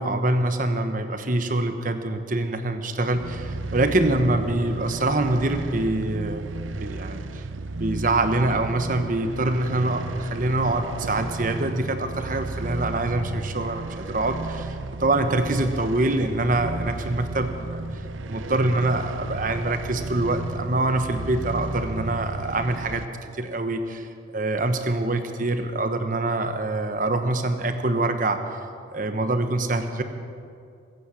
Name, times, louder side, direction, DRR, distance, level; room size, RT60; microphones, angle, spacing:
voice 1, 0.0-6.5 6.8-7.4 7.8-14.7 15.0-17.8 18.3-23.0 23.4-24.0 24.3-28.4 28.9-30.0, right 2 dB, 45° right, 7 dB, 1.1 m, -25 dB
sound 1, 3.1-23.0, right 2 dB, 90° right, 0.6 m, -33 dB
21.5 x 9.1 x 6.4 m, 2.4 s
head